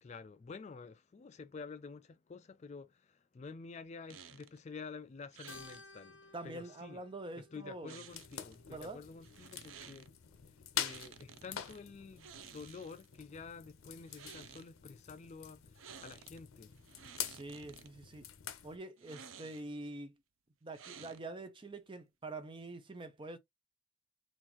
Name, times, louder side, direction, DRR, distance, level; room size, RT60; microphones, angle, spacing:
voice 1, 0.0-7.0 7.4-10.1 10.5-15.7 16.0-16.7, left 4 dB, 35° left, 0.3 m, -49 dB
sound 1, 4.1-4.6 5.3-5.8 7.9-8.6 9.2-10.1 10.8-11.8 12.2-13.2 14.0-14.7 15.7-16.4 16.8-17.9 19.0-19.8 20.7-21.4, right 7 dB, 80° right, 0.5 m, -54 dB
Keyboard (musical), 5.5-10.1, left 3 dB, 65° left, 1.0 m, -58 dB
voice 2, 6.3-8.1 8.7-9.0 17.3-18.3 18.6-20.2 20.6-23.4, right 2 dB, 25° right, 0.5 m, -45 dB
sound 2, 8.1-18.8, left 10 dB, 85° left, 0.6 m, -46 dB
3.8 x 2.5 x 2.9 m
head